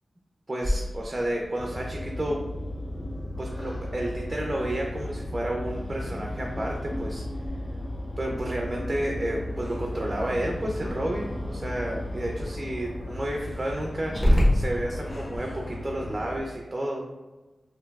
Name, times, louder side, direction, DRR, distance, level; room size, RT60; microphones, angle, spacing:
voice 1, 0.5-2.4 3.4-7.2 8.2-17.0, right 1 dB, 35° right, 0 dB, 0.4 m, -31 dB
Growling, 0.6-15.4, equal, 20° left, 1.1 m, -32 dB
sound 1, 1.6-16.4, left 1 dB, 45° left, 0.5 m, -35 dB
3.0 x 2.6 x 2.3 m, 1.2 s
cardioid pair, 55°, 0 cm